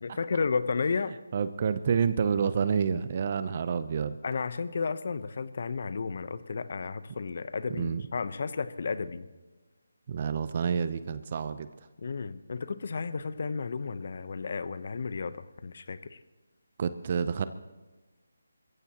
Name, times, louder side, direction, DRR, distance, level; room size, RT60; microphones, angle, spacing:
voice 1, 0.0-1.1 4.2-9.3 12.0-16.2, left 4 dB, 50° left, 14 dB, 0.9 m, -33 dB
voice 2, 1.3-4.2 7.7-8.0 10.1-11.7 16.8-17.5, right 6 dB, 40° right, 13 dB, 0.7 m, -28 dB
28.0 x 15.0 x 3.0 m, 1.2 s
figure-of-eight pair, 160°, 0 cm